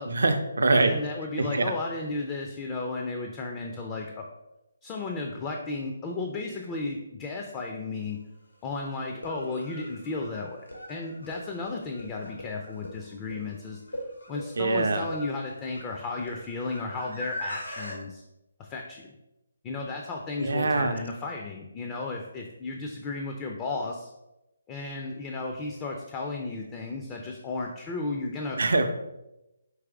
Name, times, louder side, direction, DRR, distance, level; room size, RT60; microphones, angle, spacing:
voice 1, 0.1-0.9 1.4-1.7 14.6-15.1 20.4-21.0 28.6-28.9, right 3 dB, 65° right, 7 dB, 0.5 m, -24 dB
voice 2, 0.7-4.3 4.8-8.2 8.6-13.8 14.3-18.2 18.6-19.1 19.6-24.1 24.7-28.6, left 3 dB, 20° left, 1 dB, 0.4 m, -34 dB
sound 1, 7.9-8.0 9.1-18.0, left 1 dB, 90° left, 1.2 m, -41 dB
4.7 x 3.1 x 3.5 m, 0.93 s
figure-of-eight pair, 145°, 0 cm